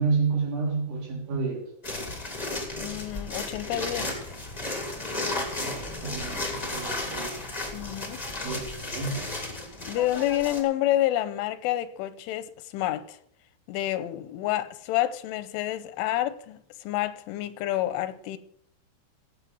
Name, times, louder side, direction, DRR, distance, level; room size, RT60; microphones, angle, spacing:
voice 1, 0.0-1.6 5.6-7.2 8.4-9.2, right 4 dB, 80° right, 5.7 m, -29 dB
sound 1, 1.8-10.6, left 2 dB, 65° left, 0.4 m, -34 dB
voice 2, 2.8-4.1 7.7-8.6 9.9-13.2 13.7-18.4, left 14 dB, 85° left, 3.3 m, -29 dB
17.0 x 6.9 x 6.2 m
omnidirectional pair, 5.4 m